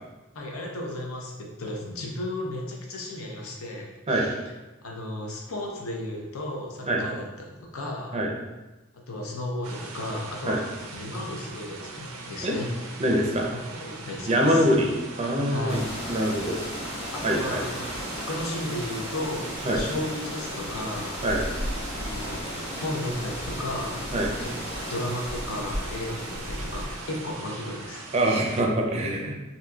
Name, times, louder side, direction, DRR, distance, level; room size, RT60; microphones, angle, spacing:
voice 1, 0.3-4.4 4.8-8.2 8.9-10.7 10.9-13.0 13.5-14.7 15.5-15.9 17.1-17.8 18.3-21.1 21.9-22.4 22.8-24.1 24.4-28.1, left 1 dB, 80° left, 0 dB, 0.6 m, -34 dB
sound 1, 9.6-28.6, right 3 dB, 85° right, 0.4 m, -41 dB
voice 2, 13.0-13.5 14.3-16.6 17.2-17.6 19.7-19.9 21.2-21.4 24.1-24.3 28.1-29.3, equal, 30° right, 0 dB, 0.4 m, -24 dB
sound 2, 15.7-27.4, equal, 30° left, 0.9 m, -35 dB
3.9 x 2.7 x 2.3 m, 1.1 s
head